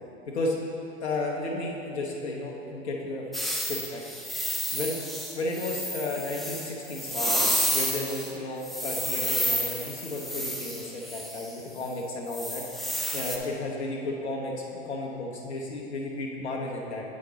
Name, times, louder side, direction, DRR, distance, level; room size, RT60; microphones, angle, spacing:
voice 1, 1.0-3.3 3.7-4.0 4.7-5.0 5.3-7.3 7.7-12.6 13.1-17.0, left 2 dB, 75° left, -2 dB, 1.0 m, -33 dB
sound 1, 3.3-8.3 8.6-11.5 12.3-13.4, equal, ahead, 0.5 m, -30 dB
8.2 x 5.1 x 4.0 m, 2.8 s
figure-of-eight pair, 100°, 33 cm